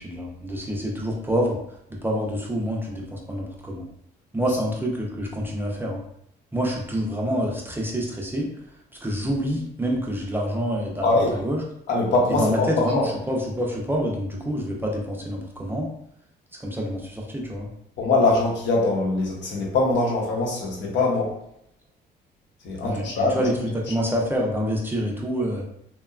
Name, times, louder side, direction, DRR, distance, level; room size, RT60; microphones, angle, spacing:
voice 1, 0.0-1.6 1.9-3.9 4.3-6.0 6.5-8.5 9.0-11.6 12.3-15.9 16.5-17.7 22.8-25.6, equal, 10° right, -1 dB, 0.4 m, -27 dB
voice 2, 11.0-11.4 11.9-13.0 18.0-21.3 22.6-23.5, left 2 dB, 75° left, -2 dB, 0.8 m, -22 dB
2.8 x 2.2 x 2.3 m, 0.73 s
cardioid pair, 115°, 18 cm